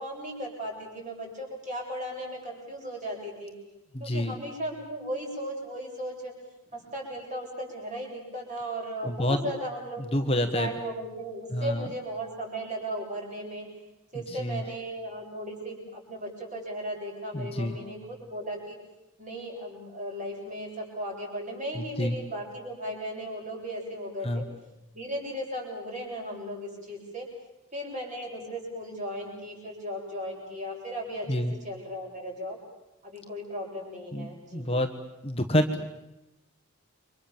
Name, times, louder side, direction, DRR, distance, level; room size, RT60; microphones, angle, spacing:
voice 1, 0.0-3.5 4.0-6.3 6.7-10.0 10.5-13.7 14.1-18.8 19.2-24.4 24.9-27.3 27.7-31.3 31.6-32.6 33.0-34.7, equal, 35° right, 0 dB, 7.9 m, -36 dB
voice 2, 3.9-4.4 9.0-9.4 10.0-10.8 11.5-11.9 14.3-14.6 17.3-17.8 21.7-22.1 24.2-24.4 31.3-31.5 34.1-34.9 35.2-35.9, left 1 dB, 25° left, 5 dB, 1.4 m, -28 dB
29.5 x 25.0 x 7.3 m, 0.96 s
head